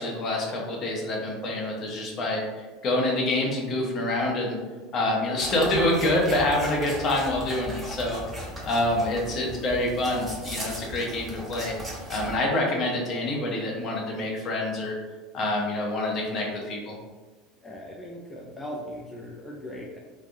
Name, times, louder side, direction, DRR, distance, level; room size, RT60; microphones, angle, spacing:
voice 1, 0.0-4.6 4.9-8.2 8.6-11.7 12.1-14.9 15.3-16.9, left 1 dB, 40° left, -1 dB, 0.8 m, -26 dB
sound 1, 5.4-12.3, equal, 15° right, 0.9 m, -37 dB
voice 2, 17.6-20.0, equal, 10° left, -3 dB, 0.4 m, -39 dB
3.2 x 2.3 x 2.6 m, 1.3 s
supercardioid pair, 125°, 0 cm